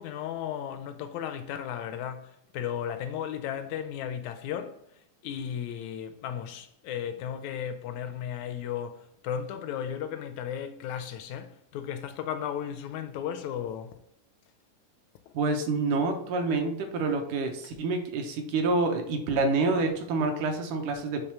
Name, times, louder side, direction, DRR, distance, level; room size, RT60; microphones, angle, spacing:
voice 1, 0.0-4.8 5.2-14.0 15.3-15.4, left 9 dB, 80° left, 1.7 m, -35 dB
voice 2, 15.3-21.3, right 3 dB, 75° right, 2.4 m, -27 dB
6.6 x 3.5 x 5.8 m
omnidirectional pair, 3.7 m